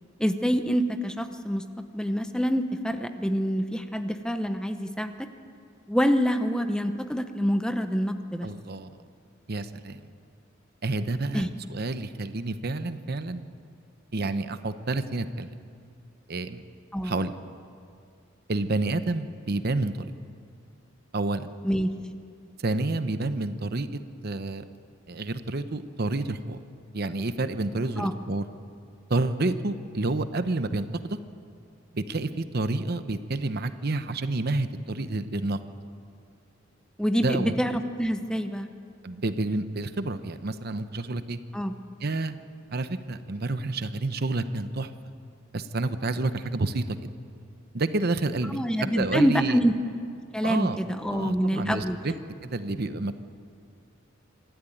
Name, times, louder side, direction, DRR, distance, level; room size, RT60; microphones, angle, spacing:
voice 1, 0.2-1.6 1.9-5.3 5.9-8.5 11.3-11.5 16.9-17.1 21.6-21.9 28.0-28.1 37.0-38.7 41.5-41.7 48.5-49.7 50.3-52.0, equal, 5° left, 8 dB, 0.8 m, -26 dB
voice 2, 8.4-9.0 9.5-10.0 10.8-13.4 14.1-15.5 16.3-16.6 17.0-17.3 18.5-20.1 21.1-21.5 22.6-24.6 25.1-26.6 26.9-28.4 29.1-31.2 31.9-35.6 37.2-37.5 39.0-41.4 42.0-42.4 42.7-44.9 45.5-47.0 47.7-49.6 50.4-50.8 51.0-52.1 52.4-53.1, right 2 dB, 50° right, 11 dB, 0.8 m, -29 dB
26.0 x 12.5 x 9.2 m, 2.3 s
head